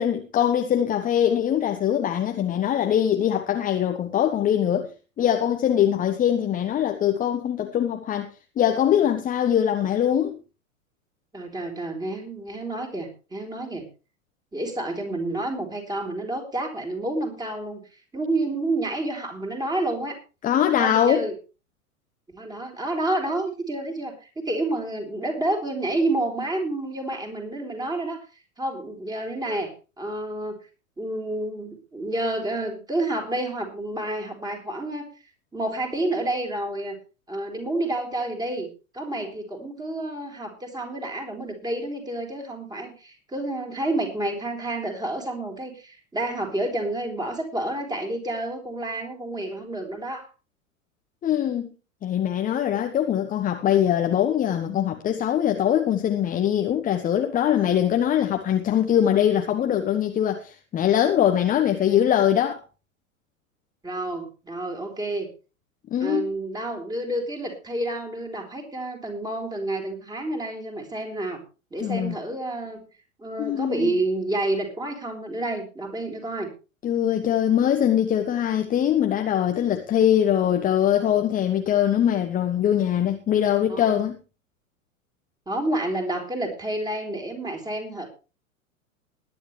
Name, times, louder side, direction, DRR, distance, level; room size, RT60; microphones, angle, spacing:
voice 1, 0.0-4.9 5.2-8.3 8.6-10.4 20.4-21.3 51.2-51.7 52.0-62.6 65.9-66.3 71.8-72.2 73.4-73.9 76.8-84.2, left 10 dB, 20° left, 1.2 m, -22 dB
voice 2, 11.3-13.8 14.5-17.8 18.1-20.2 20.8-21.3 22.3-28.2 28.6-30.6 31.0-35.1 35.5-37.0 37.3-38.7 38.9-50.3 63.8-65.3 66.0-71.4 71.7-72.8 73.2-76.5 83.7-84.0 85.5-88.1, right 2 dB, 10° right, 4.1 m, -29 dB
20.5 x 10.5 x 3.2 m
figure-of-eight pair, 95°, 42 cm